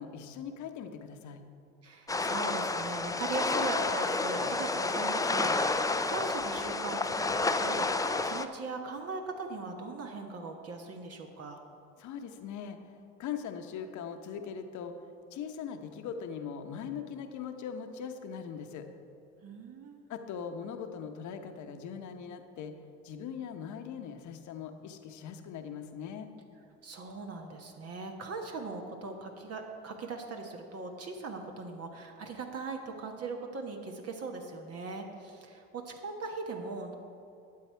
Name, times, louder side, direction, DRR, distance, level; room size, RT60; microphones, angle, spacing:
voice 1, 0.0-1.4 12.0-12.9 13.2-14.9 15.3-18.9 20.1-22.7 23.0-26.3, left 7 dB, 60° left, 6 dB, 1.1 m, -40 dB
voice 2, 1.8-11.6 19.4-20.0 26.8-37.0, right 3 dB, 50° right, 2 dB, 1.3 m, -40 dB
sound 1, 2.1-8.4, left 3 dB, 10° left, 0.5 m, -30 dB
12.0 x 8.2 x 4.6 m, 2.5 s
supercardioid pair, 75°, 32 cm